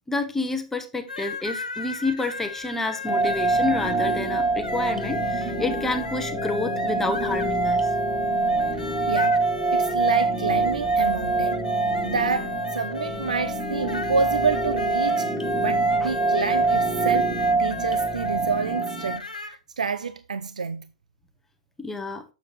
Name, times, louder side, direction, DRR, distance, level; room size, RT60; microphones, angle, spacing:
voice 1, 0.1-7.9 21.8-22.2, left 3 dB, 10° left, 0.8 m, -29 dB
sound 1, 1.1-19.5, left 4 dB, 85° left, 1.2 m, -36 dB
sound 2, 3.1-19.2, right 3 dB, 10° right, 1.5 m, -25 dB
voice 2, 9.1-9.4 9.7-11.6 12.0-20.9, right 5 dB, 75° right, 0.4 m, -29 dB
7.1 x 6.5 x 3.2 m
figure-of-eight pair, 110°, 4 cm